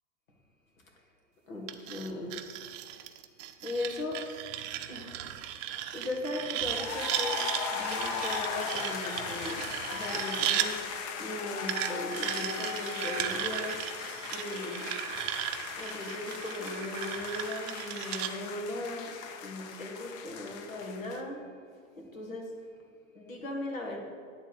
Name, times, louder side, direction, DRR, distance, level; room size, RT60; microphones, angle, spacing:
voice 1, 1.5-2.4 3.6-4.2 4.9-5.2 5.6-7.4 7.7-10.8 11.2-13.8 14.3-14.9 15.8-19.1 19.4-21.4 22.0-22.5 23.2-24.0, left 2 dB, 85° left, 1 dB, 1.9 m, -38 dB
sound 1, 1.7-10.7 11.7-18.3, right 12 dB, 40° right, 0.6 m, -36 dB
sound 2, 6.6-21.2, left 6 dB, 40° left, 0.9 m, -38 dB
9.9 x 4.0 x 6.9 m, 2.2 s
hypercardioid pair, 105°, 39 cm